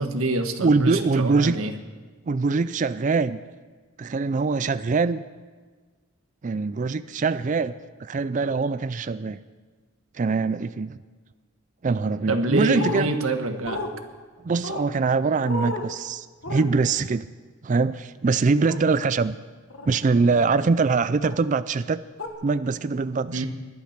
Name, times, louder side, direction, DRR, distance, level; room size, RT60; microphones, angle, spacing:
voice 1, 0.0-1.7 12.3-13.8 23.3-23.5, right 2 dB, 85° right, 6 dB, 1.5 m, -26 dB
voice 2, 0.6-1.6 2.3-3.4 4.0-5.2 6.4-7.7 8.0-9.4 10.1-11.0 11.8-13.1 14.4-17.2 17.6-19.4 19.9-22.0 22.4-23.5, right 4 dB, 35° right, 14 dB, 0.4 m, -23 dB
sound 1, 12.7-13.0 13.7-13.9 14.6-14.9 15.4-15.9 16.4-16.7 18.7-18.8 19.7-20.0 21.2-21.4 22.2-22.3, left 2 dB, 70° left, 1.7 m, -31 dB
20.5 x 11.5 x 5.9 m, 1.4 s
head